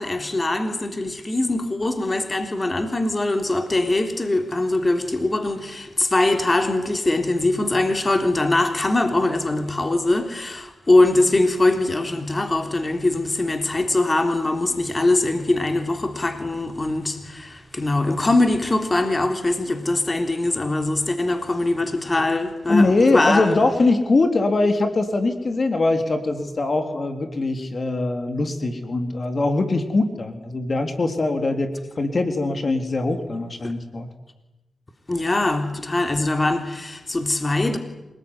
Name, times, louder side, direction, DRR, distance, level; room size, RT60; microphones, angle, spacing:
voice 1, 0.0-23.6 33.6-33.7 35.1-37.8, left 2 dB, 30° left, 3.6 m, -22 dB
voice 2, 22.7-34.1, left 2 dB, 50° left, 3.7 m, -22 dB
27.0 x 20.5 x 10.0 m
cardioid pair, 55°, 0 cm